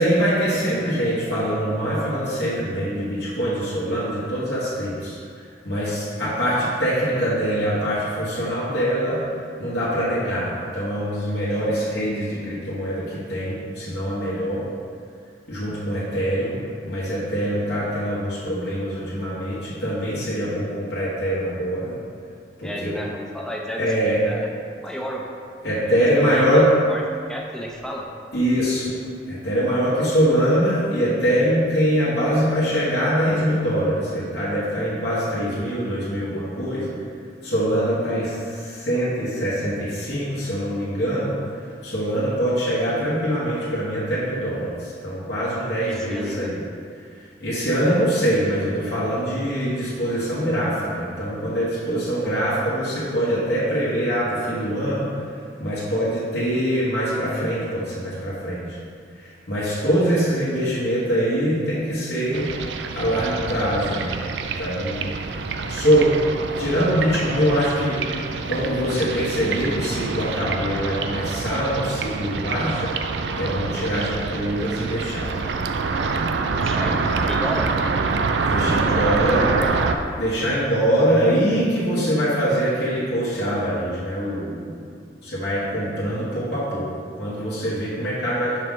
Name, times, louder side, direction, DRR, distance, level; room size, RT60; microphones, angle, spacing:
voice 1, 0.0-9.2 9.6-14.6 15.5-21.9 22.6-22.9 23.8-24.2 25.6-26.7 28.3-29.0 29.3-36.9 37.4-41.4 41.8-46.6 47.4-55.2 55.6-58.8 59.1-62.5 62.9-64.2 64.6-65.1 65.7-66.3 66.6-73.0 73.3-75.3 78.5-79.5 80.2-84.8 85.2-88.6, equal, 70° left, -10 dB, 1.2 m, -23 dB
voice 2, 22.6-23.9 24.3-24.5 24.8-25.2 25.8-26.6 26.9-27.0 27.3-28.1 38.1-38.2 45.8-46.5 76.6-77.7 78.9-79.7, equal, 5° left, -1 dB, 0.5 m, -32 dB
sound 1, 62.3-80.0, right 4 dB, 75° right, 0.4 m, -26 dB
6.0 x 4.8 x 3.7 m, 2.2 s
head